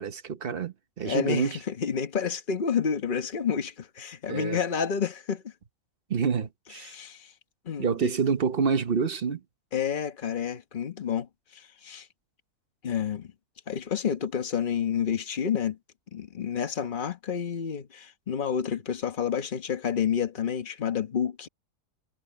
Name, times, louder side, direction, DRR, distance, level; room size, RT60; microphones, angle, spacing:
voice 1, 0.0-1.6 4.3-4.6 6.1-6.9 7.8-9.4, right 6 dB, 40° right, 1.1 m, -27 dB
voice 2, 1.0-5.5 6.9-7.3 7.7-8.1 9.7-12.1 12.8-13.3 13.7-15.8 16.1-21.5, left 7 dB, 35° left, 1.2 m, -29 dB
omnidirectional pair, 1.6 m